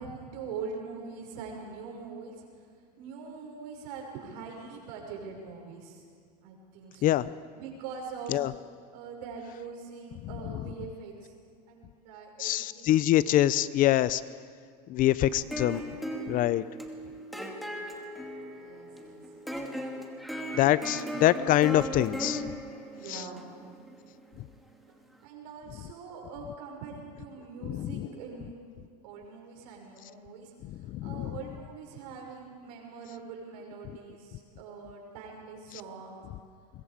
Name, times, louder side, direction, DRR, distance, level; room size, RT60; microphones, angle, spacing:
voice 1, 0.0-2.7 3.0-6.1 6.4-7.1 7.6-8.5 8.9-11.4 11.7-13.0 13.3-13.4 18.6-19.2 20.9-21.2 22.9-23.7 25.2-28.6 29.0-36.2, right 5 dB, 75° right, 1 dB, 6.0 m, -43 dB
voice 2, 12.4-14.2 14.9-15.8 16.3-16.6 20.5-22.4 23.1-23.2 27.6-28.1 30.9-31.4, left 13 dB, 40° left, 17 dB, 0.6 m, -25 dB
sound 1, 15.3-24.5, equal, ahead, 2.4 m, -38 dB
25.0 x 22.5 x 5.1 m, 2.1 s
supercardioid pair, 120°, 20 cm